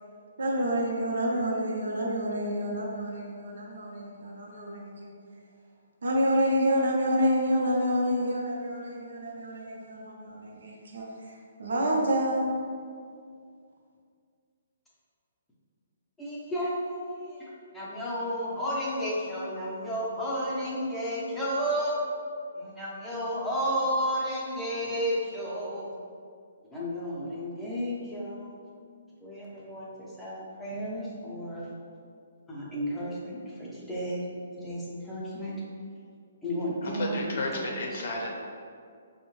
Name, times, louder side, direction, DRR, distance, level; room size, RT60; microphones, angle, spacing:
voice 1, 0.4-5.1 6.0-12.5, equal, 85° right, -2 dB, 0.6 m, -28 dB
voice 2, 16.2-17.5 17.7-22.0 22.6-25.9 26.7-28.6 29.2-31.7 32.5-34.2 34.6-35.6 36.4-37.9, equal, 5° left, -7 dB, 0.5 m, -32 dB
voice 3, 36.8-38.3, left 2 dB, 55° left, 0 dB, 0.6 m, -32 dB
5.3 x 2.1 x 3.1 m, 2.2 s
hypercardioid pair, 170°, 0 cm